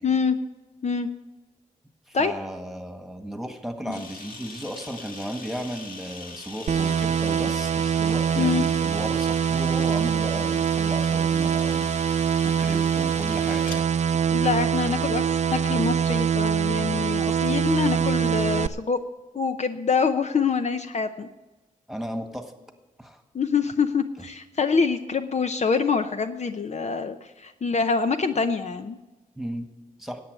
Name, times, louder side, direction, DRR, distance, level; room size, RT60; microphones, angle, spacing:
voice 1, 0.0-0.4 0.8-1.1 2.1-2.3 3.9-4.0 8.4-8.6 14.3-19.0 19.3-21.3 23.3-29.0, left 5 dB, 50° left, 8 dB, 0.6 m, -25 dB
voice 2, 2.1-11.9 12.4-13.8 21.9-22.5 23.0-23.2 29.4-29.7 30.0-30.2, equal, ahead, 5 dB, 1.7 m, -35 dB
Camera, 3.9-13.8, left 3 dB, 80° left, 1.6 m, -42 dB
sound 1, 6.7-18.7, right 8 dB, 55° right, 0.4 m, -24 dB
10.0 x 8.4 x 9.3 m, 1.1 s
cardioid pair, 60°, 14 cm